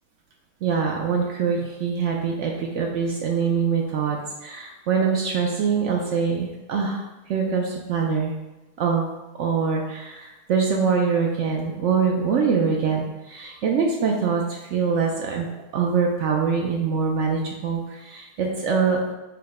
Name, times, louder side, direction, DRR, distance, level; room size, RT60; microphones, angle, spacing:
voice 1, 0.6-8.3 8.8-9.1 9.4-19.1, right 5 dB, 75° right, 0 dB, 0.6 m, -24 dB
4.8 x 2.1 x 4.7 m, 1.0 s
omnidirectional pair, 1.7 m